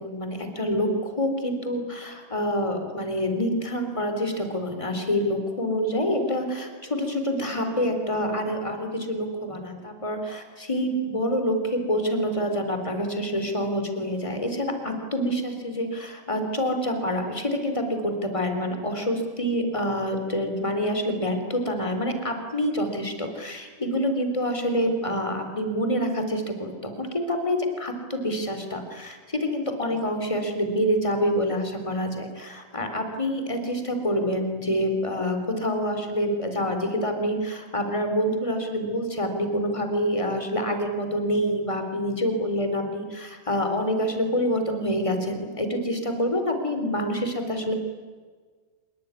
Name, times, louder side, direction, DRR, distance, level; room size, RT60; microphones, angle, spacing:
voice 1, 0.0-47.7, equal, 10° left, 6 dB, 2.6 m, -27 dB
26.0 x 22.5 x 9.7 m, 1.5 s
omnidirectional pair, 5.7 m